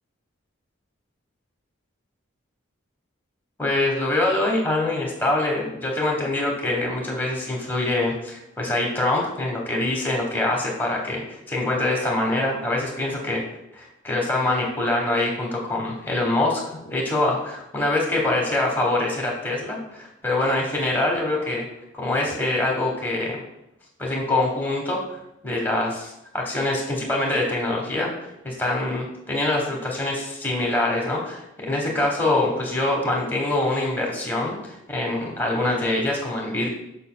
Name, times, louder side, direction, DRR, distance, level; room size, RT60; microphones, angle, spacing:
voice 1, 3.6-13.4 13.7-21.7 21.9-23.4 24.0-25.0 25.4-36.7, left 2 dB, 10° left, -1 dB, 1.1 m, -24 dB
6.6 x 6.4 x 2.2 m, 0.88 s
head